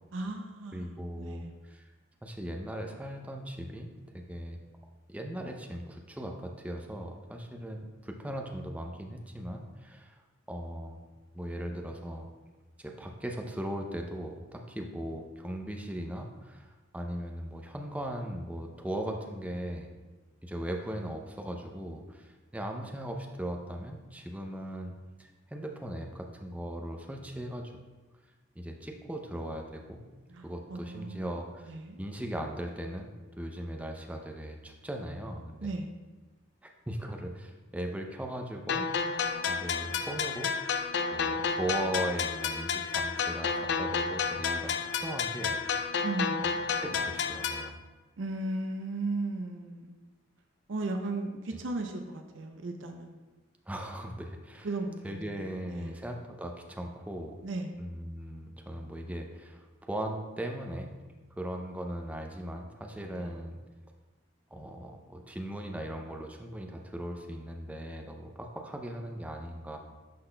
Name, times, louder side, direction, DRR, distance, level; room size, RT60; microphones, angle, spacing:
voice 1, 0.1-1.6 30.3-31.3 31.7-32.0 35.6-35.9 46.0-46.4 48.2-50.0 50.7-53.2 54.6-56.0 57.4-57.7 63.0-63.3, right 2 dB, 70° right, 4 dB, 0.5 m, -36 dB
voice 2, 0.7-1.9 2.2-4.6 5.1-10.2 10.5-11.0 11.3-12.3 12.8-19.9 20.4-24.9 25.2-27.7 28.6-30.0 30.4-35.8 36.6-38.9 39.5-40.5 41.0-45.6 46.4-47.8 53.7-54.7 55.0-57.4 57.8-61.0 61.4-63.6 64.5-69.8, right 1 dB, 5° right, 2 dB, 0.4 m, -38 dB
sound 1, 38.7-47.7, left 5 dB, 55° left, 0.3 m, -31 dB
11.5 x 4.0 x 2.2 m, 1.2 s
head